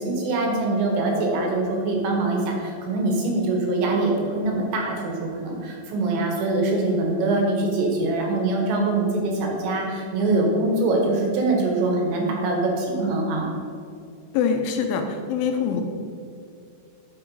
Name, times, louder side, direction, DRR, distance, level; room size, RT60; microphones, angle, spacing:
voice 1, 0.0-13.5, right 2 dB, 75° right, 1 dB, 3.3 m, -23 dB
voice 2, 14.3-15.8, left 6 dB, 80° left, 5 dB, 3.1 m, -24 dB
9.7 x 6.1 x 4.7 m, 2.4 s
omnidirectional pair, 5.6 m